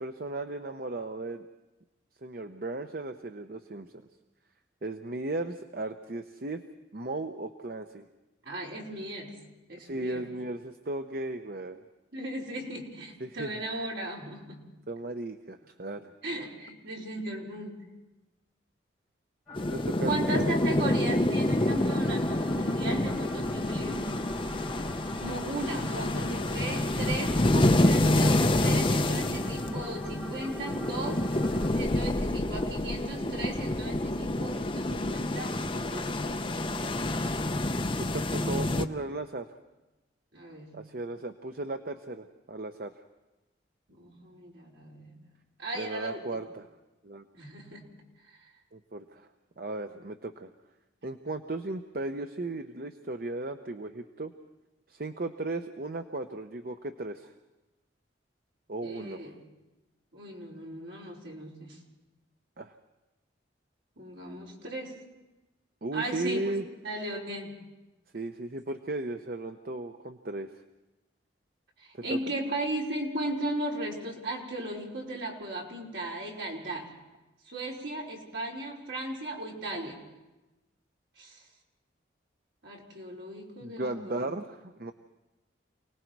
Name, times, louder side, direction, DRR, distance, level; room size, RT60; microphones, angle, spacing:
voice 1, 0.0-1.5 2.2-3.9 4.8-6.6 6.9-8.1 9.8-11.8 13.2-13.6 14.9-16.1 19.6-20.2 38.0-39.5 40.7-42.9 45.7-46.7 47.0-47.2 48.7-49.3 49.6-50.5 51.0-54.3 54.9-57.3 58.7-59.3 62.6-62.7 65.8-66.6 68.1-70.5 71.9-72.2 83.6-84.9, right 2 dB, 50° right, 7 dB, 0.8 m, -36 dB
voice 2, 8.4-9.4 9.7-10.3 12.1-14.7 16.2-17.8 20.0-24.2 25.1-31.3 31.7-37.5 40.3-40.8 43.9-45.1 45.6-46.4 47.3-47.8 58.8-59.4 60.1-61.8 64.0-65.0 65.9-66.5 66.8-67.6 71.8-76.9 77.5-80.0 81.2-81.4 82.6-84.3, right 1 dB, 70° right, -3 dB, 4.8 m, -37 dB
sound 1, 19.5-20.9 21.3-31.7, left 1 dB, ahead, 5.8 m, -43 dB
sound 2, 19.6-38.9, left 1 dB, 25° left, 0.7 m, -28 dB
28.5 x 19.5 x 4.7 m, 1.0 s
head